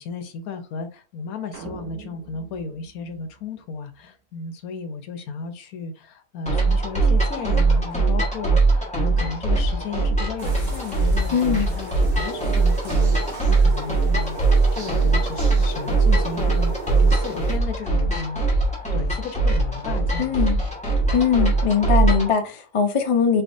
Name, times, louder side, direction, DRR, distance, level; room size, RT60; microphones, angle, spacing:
voice 1, 0.0-18.6 18.9-20.3, left 5 dB, 75° left, 1.2 m, -34 dB
sound 1, 1.5-4.0, right 7 dB, 80° right, 1.4 m, -43 dB
sound 2, 6.5-22.3, right 3 dB, 5° left, 1.2 m, -21 dB
sound 3, 10.4-17.6, right 2 dB, 40° right, 1.2 m, -36 dB
voice 2, 11.3-11.7 20.2-20.6 21.1-23.4, left 7 dB, 45° left, 0.4 m, -21 dB
4.0 x 3.5 x 2.6 m
omnidirectional pair, 1.6 m